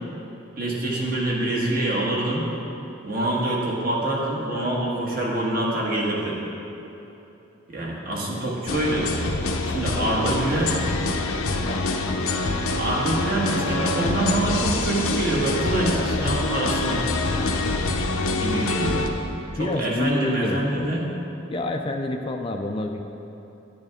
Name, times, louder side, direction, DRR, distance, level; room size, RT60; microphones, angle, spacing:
voice 1, 0.6-2.4 3.0-6.4 7.7-9.1 9.6-10.7 12.7-17.0 18.4-19.1 19.5-21.1, right 1 dB, 45° right, -3 dB, 1.5 m, -25 dB
sound 1, 8.7-19.1, left 2 dB, 90° left, 0.8 m, -25 dB
voice 2, 9.9-10.5 11.6-11.8 19.6-20.9 21.5-23.0, left 2 dB, 25° left, 3 dB, 0.4 m, -28 dB
10.5 x 9.0 x 3.6 m, 3.0 s
head